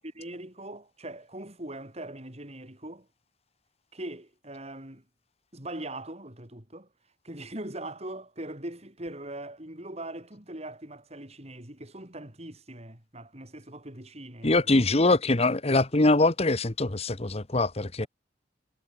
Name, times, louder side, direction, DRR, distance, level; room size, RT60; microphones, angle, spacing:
voice 1, 0.1-3.1 3.9-5.0 5.5-6.9 7.2-14.9 18.0-18.1, right 1 dB, 35° right, 4.8 m, -41 dB
voice 2, 14.4-18.1, left 2 dB, 35° left, 1.2 m, -23 dB
head